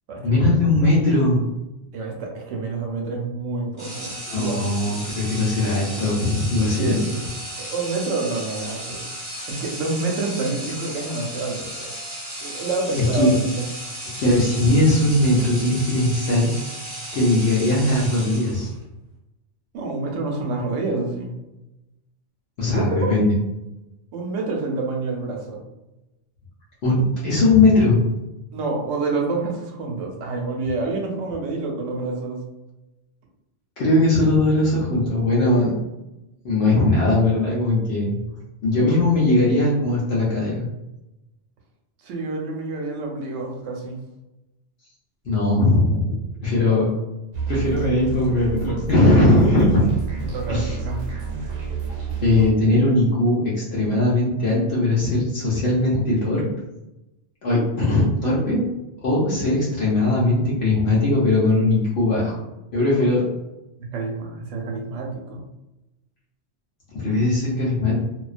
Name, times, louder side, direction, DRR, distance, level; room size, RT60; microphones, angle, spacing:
voice 1, 0.2-1.4 4.3-7.0 13.1-13.3 14.2-16.5 17.1-18.7 22.6-23.3 26.8-28.0 33.8-35.8 36.4-38.2 38.6-40.7 45.2-46.1 46.4-46.9 47.5-49.8 50.5-50.8 52.2-56.4 57.4-58.6 59.0-62.4 62.7-63.2 66.9-68.0, left 2 dB, 65° left, -7 dB, 0.8 m, -19 dB
voice 2, 1.9-4.7 6.6-7.3 7.6-9.0 9.5-11.9 12.4-13.6 19.7-21.3 22.7-23.1 24.1-25.6 28.5-32.4 42.0-44.0 46.5-46.9 50.2-51.1 63.0-63.1 63.8-65.4, right 3 dB, 90° right, 0 dB, 0.9 m, -28 dB
sound 1, 3.8-18.8, right 1 dB, 25° right, 0.9 m, -35 dB
sound 2, 47.3-52.5, right 6 dB, 60° right, 0.8 m, -29 dB
2.3 x 2.2 x 2.4 m, 0.96 s
omnidirectional pair, 1.2 m